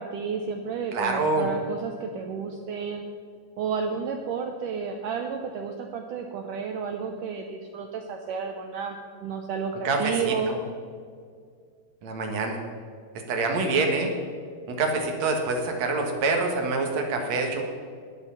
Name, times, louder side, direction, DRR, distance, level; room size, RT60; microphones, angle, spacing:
voice 1, 0.0-3.0 3.6-10.6, right 6 dB, 80° right, 4 dB, 1.9 m, -31 dB
voice 2, 0.9-1.5 9.8-10.6 12.0-12.6 13.3-14.1 14.7-17.6, right 3 dB, 55° right, 2 dB, 2.2 m, -26 dB
12.5 x 10.0 x 5.7 m, 2.1 s
omnidirectional pair, 4.6 m